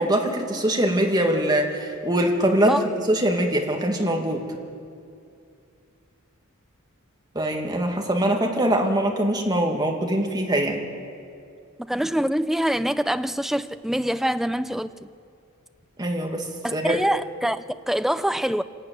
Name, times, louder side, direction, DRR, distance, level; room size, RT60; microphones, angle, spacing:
voice 1, 0.0-2.8 3.1-4.4 7.4-10.8 16.0-16.5 16.7-17.0, right 1 dB, 20° right, 2.0 m, -23 dB
voice 2, 11.8-15.1 16.6-18.6, equal, ahead, 0.4 m, -25 dB
25.5 x 12.0 x 9.2 m
head